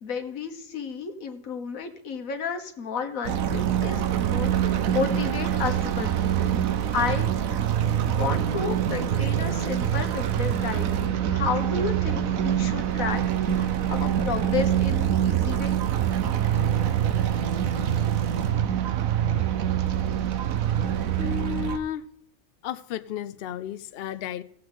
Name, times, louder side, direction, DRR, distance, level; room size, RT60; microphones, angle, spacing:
voice 1, 0.0-6.6 6.9-7.3 8.1-15.8, left 5 dB, 85° left, 1.7 m, -32 dB
sound 1, 3.2-21.8, right 10 dB, 90° right, 1.2 m, -25 dB
voice 2, 21.2-22.1 22.6-24.4, left 9 dB, 60° left, 0.7 m, -33 dB
17.0 x 7.6 x 3.8 m
omnidirectional pair, 1.4 m